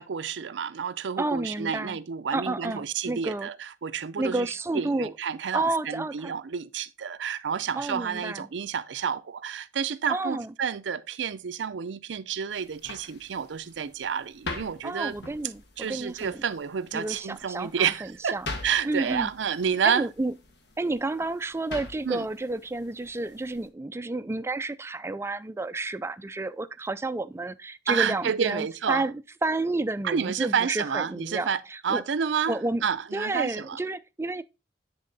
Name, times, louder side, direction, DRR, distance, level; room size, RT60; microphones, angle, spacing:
voice 1, 0.0-15.2 15.8-18.4 18.6-20.1 22.0-22.3 27.9-29.0 30.0-33.8, right 7 dB, 80° right, 0.5 m, -30 dB
voice 2, 1.2-2.0 2.3-3.5 4.2-5.1 5.5-6.3 7.8-8.5 10.1-10.5 14.8-16.4 16.9-18.5 18.8-19.3 19.8-20.3 20.8-29.1 29.4-32.0 32.5-32.8 33.1-34.4, right 2 dB, 15° right, 0.3 m, -30 dB
sound 1, 12.5-23.7, left 2 dB, 65° left, 1.4 m, -44 dB
9.7 x 3.6 x 3.9 m
head